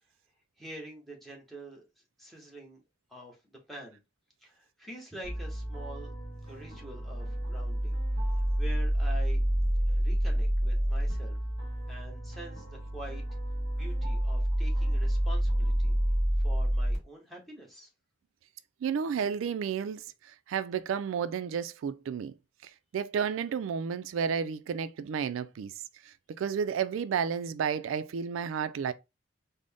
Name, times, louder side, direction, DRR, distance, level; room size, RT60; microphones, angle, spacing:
voice 1, 0.6-1.8 2.2-2.8 3.1-4.0 4.4-6.1 6.5-8.0 8.6-9.4 9.9-11.4 11.9-13.2 13.8-16.0 16.4-17.9, right 1 dB, ahead, 0.9 m, -46 dB
sound 1, 5.2-17.0, equal, 35° left, 1.5 m, -29 dB
voice 2, 18.8-20.0 20.5-22.3 22.6-25.7 26.1-28.9, right 7 dB, 85° right, 0.3 m, -32 dB
3.8 x 2.1 x 3.4 m
head